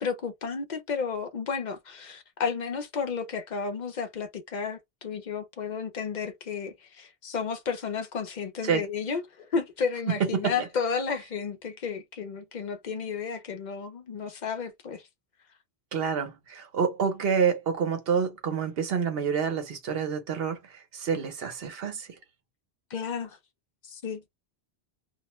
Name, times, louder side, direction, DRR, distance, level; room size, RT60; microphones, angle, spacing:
voice 1, 0.0-15.0 22.9-23.4 23.8-24.2, left 6 dB, 55° left, 0.6 m, -32 dB
voice 2, 10.1-10.7 15.9-22.1, right 6 dB, 65° right, 0.9 m, -28 dB
2.3 x 2.1 x 2.9 m
omnidirectional pair, 1.1 m